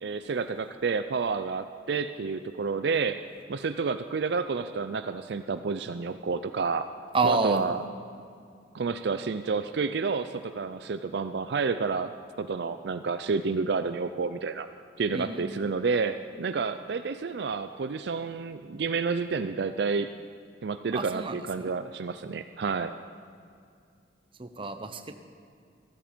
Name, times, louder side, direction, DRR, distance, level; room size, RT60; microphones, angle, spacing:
voice 1, 0.0-3.2 3.5-6.9 7.2-7.8 8.7-14.7 15.0-20.1 20.6-22.9, right 4 dB, 60° right, 10 dB, 0.4 m, -30 dB
voice 2, 7.1-7.7 15.1-15.6 20.9-21.7 24.4-25.2, right 3 dB, 30° right, 8 dB, 0.7 m, -29 dB
14.0 x 14.0 x 5.1 m, 2.3 s
head